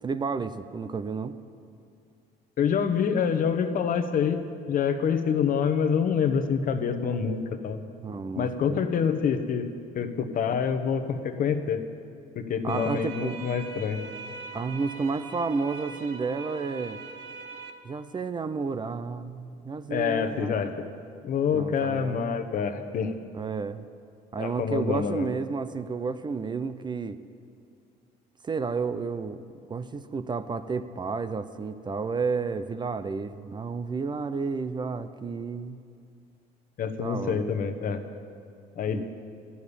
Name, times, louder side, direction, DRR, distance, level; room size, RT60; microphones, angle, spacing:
voice 1, 0.0-1.4 8.0-8.8 12.6-13.4 14.5-17.0 17.8-20.7 21.5-22.3 23.3-23.9 24.3-27.2 28.4-29.4 29.7-35.8 37.0-37.5 38.9-39.0, right 4 dB, 25° right, 12 dB, 0.5 m, -31 dB
voice 2, 2.6-7.8 8.3-9.7 9.9-11.8 12.3-14.0 19.9-20.9 21.2-23.2 24.3-25.3 36.8-38.0 38.8-39.0, left 7 dB, 55° left, 9 dB, 1.0 m, -26 dB
sound 1, 12.7-17.7, right 4 dB, 70° right, 1.2 m, -41 dB
12.5 x 7.1 x 9.9 m, 2.4 s
cardioid pair, 110°, 17 cm